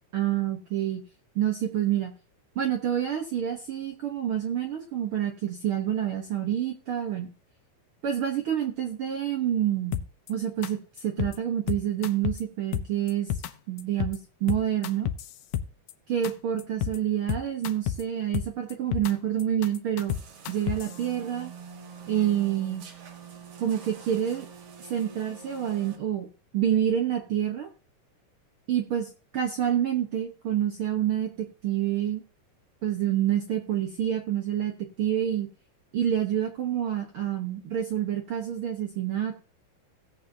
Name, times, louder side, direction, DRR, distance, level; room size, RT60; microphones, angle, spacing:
voice 1, 0.1-1.0 1.3-2.1 2.5-7.3 8.0-10.0 10.3-13.3 13.7-15.1 16.1-20.1 20.5-21.5 22.1-22.8 23.6-24.5 24.8-26.3 26.5-27.7 28.7-32.2 32.8-35.5 35.9-39.3, right 10 dB, 80° right, 4 dB, 1.2 m, -28 dB
sound 1, 9.9-10.3 10.6-10.7 11.0-11.4 11.7-12.4 12.7-13.5 13.8-14.2 14.5-15.9 16.2-16.3 16.6-17.0 17.3-18.0 18.3-19.1 19.4-20.9, left 10 dB, 80° left, 1.7 m, -30 dB
sound 2, 20.1-26.0, right 6 dB, 55° right, 1.9 m, -45 dB
17.0 x 8.1 x 2.7 m, 0.34 s
omnidirectional pair, 4.0 m